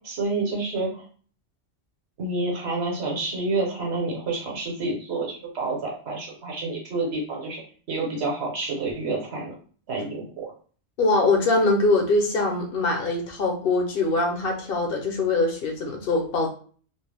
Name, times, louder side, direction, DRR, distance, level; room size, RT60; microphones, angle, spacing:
voice 1, 0.0-1.0 2.2-7.6 7.9-9.6 9.9-10.5, right 3 dB, 70° right, -1 dB, 1.1 m, -28 dB
voice 2, 11.0-16.5, left 3 dB, 65° left, 2 dB, 0.7 m, -23 dB
2.5 x 2.0 x 3.2 m, 0.43 s
omnidirectional pair, 1.1 m